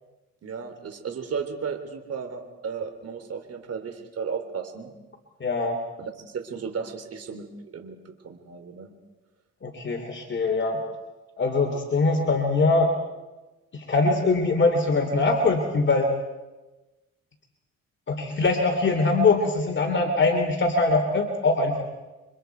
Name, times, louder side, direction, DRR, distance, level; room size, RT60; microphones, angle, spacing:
voice 1, 0.4-4.9 6.0-8.9, right 6 dB, 55° right, 6 dB, 3.3 m, -34 dB
voice 2, 5.4-5.8 9.6-10.8 11.4-12.9 13.7-16.1 18.1-21.8, left 3 dB, 40° left, 3 dB, 2.9 m, -22 dB
28.0 x 25.0 x 4.6 m, 1.1 s
cardioid pair, 90°, 30 cm